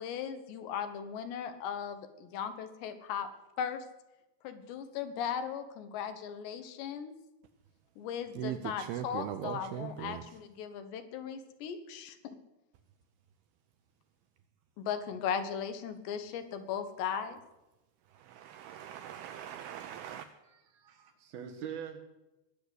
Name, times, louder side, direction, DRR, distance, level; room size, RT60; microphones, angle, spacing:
voice 1, 0.0-3.3 3.6-3.9 4.4-7.1 8.0-12.4 14.8-17.4, left 7 dB, 80° left, 10 dB, 3.4 m, -37 dB
voice 2, 8.4-10.2 18.1-20.3, right 11 dB, 80° right, 9 dB, 2.2 m, -40 dB
voice 3, 20.4-22.1, right 8 dB, 65° right, 5 dB, 3.2 m, -44 dB
20.5 x 8.0 x 8.0 m, 0.99 s
omnidirectional pair, 5.0 m